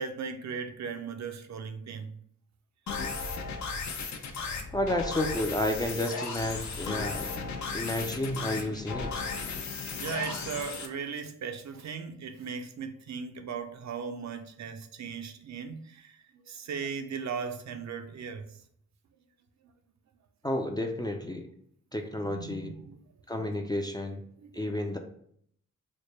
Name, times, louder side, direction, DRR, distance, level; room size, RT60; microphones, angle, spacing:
voice 1, 0.0-2.2 9.5-18.6 22.3-23.0 23.4-23.6 24.4-24.9, right 6 dB, 60° right, 0.5 m, -38 dB
sound 1, 2.9-10.9, left 4 dB, 65° left, 0.6 m, -35 dB
voice 2, 4.7-7.4 7.7-9.4 20.4-21.5 21.9-22.7 23.3-24.2 24.5-25.0, left 1 dB, 15° left, 0.3 m, -31 dB
3.2 x 2.1 x 4.2 m
cardioid pair, 90°, 32 cm